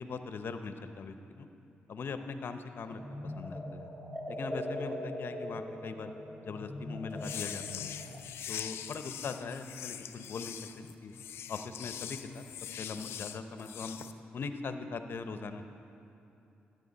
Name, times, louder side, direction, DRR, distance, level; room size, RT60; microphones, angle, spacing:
voice 1, 0.0-1.5 1.9-3.9 4.3-6.1 6.4-7.9 8.5-10.6 11.0-11.1 11.5-12.4 12.8-14.0 14.3-15.6, left 4 dB, 60° left, 8 dB, 0.7 m, -40 dB
sound 1, 2.9-8.2, left 1 dB, 15° left, 1.2 m, -41 dB
sound 2, 7.1-14.1, left 10 dB, 80° left, 0.4 m, -42 dB
14.0 x 9.5 x 4.1 m, 2.8 s
cardioid pair, 60°, 4 cm